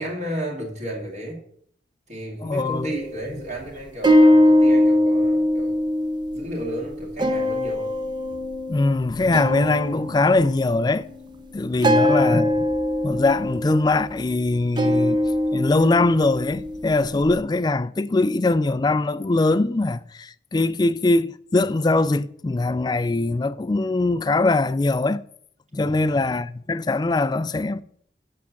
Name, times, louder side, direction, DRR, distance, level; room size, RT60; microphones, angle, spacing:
voice 1, 0.0-1.4 2.1-5.8 6.3-7.9 11.7-12.2 25.7-26.1, right 1 dB, 40° right, 1.9 m, -33 dB
voice 2, 2.4-2.9 8.7-11.1 11.5-12.5 13.0-15.2 15.5-25.2 25.7-27.8, left 2 dB, 25° left, 0.3 m, -21 dB
sound 1, 2.6-3.3 3.6-3.7 4.0-11.1 11.8-14.4 14.8-17.3, left 1 dB, 25° right, 0.6 m, -22 dB
7.3 x 5.9 x 6.9 m
head